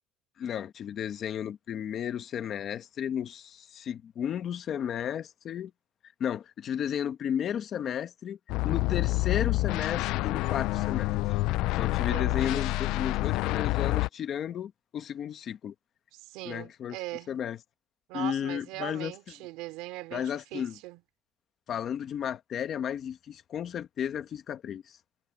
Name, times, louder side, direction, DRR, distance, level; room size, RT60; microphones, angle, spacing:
voice 1, 0.4-5.7 6.2-11.1 11.8-15.7 16.4-17.0 17.3-17.6 18.1-19.3 20.1-20.8 21.7-25.0, left 9 dB, 35° left, 1.2 m, -33 dB
sound 1, 8.5-14.1, left 20 dB, 60° left, 0.4 m, -28 dB
voice 2, 11.9-12.7 16.1-17.3 18.1-21.0, right 20 dB, 75° right, 3.6 m, -40 dB
cardioid pair, 175°, 0 cm